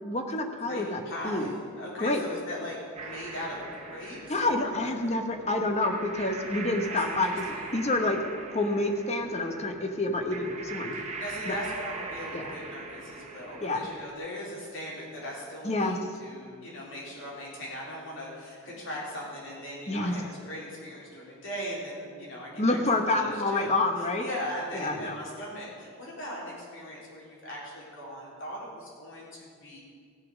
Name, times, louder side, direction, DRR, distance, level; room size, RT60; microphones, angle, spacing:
voice 1, 0.0-1.5 2.0-2.2 4.3-7.4 7.7-8.2 8.5-11.0 11.5-11.6 12.3-12.4 13.6-13.8 15.6-16.0 19.9-20.1 22.6-24.2 24.7-25.2, left 2 dB, 30° left, 5 dB, 1.0 m, -28 dB
voice 2, 0.6-5.2 6.9-7.8 10.9-23.7 24.0-29.8, equal, 55° left, -5 dB, 3.8 m, -39 dB
sound 1, 3.0-14.1, right 3 dB, 30° right, 1.0 m, -41 dB
16.5 x 6.6 x 6.2 m, 2.1 s
head